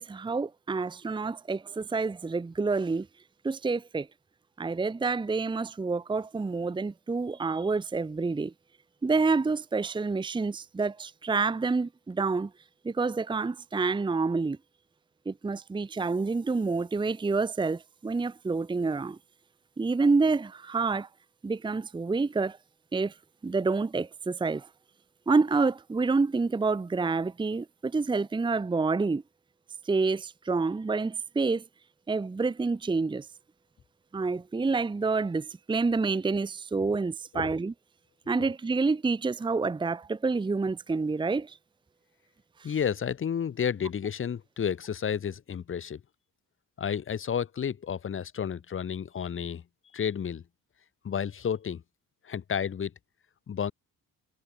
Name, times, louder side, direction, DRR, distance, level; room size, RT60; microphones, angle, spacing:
voice 1, 0.0-3.1 3.4-4.1 4.6-8.5 9.0-12.5 12.8-14.6 15.3-19.2 19.8-21.1 21.4-22.6 22.9-23.1 23.4-24.7 25.3-29.2 29.9-31.6 32.1-33.3 34.1-37.7 38.3-41.6, right 4 dB, 15° right, 0.9 m, -28 dB
voice 2, 42.6-46.0 46.8-49.6 49.9-50.4 51.0-51.8 52.2-52.9 53.5-53.7, left 8 dB, 40° left, 1.8 m, -31 dB
cardioid pair, 105°, 33 cm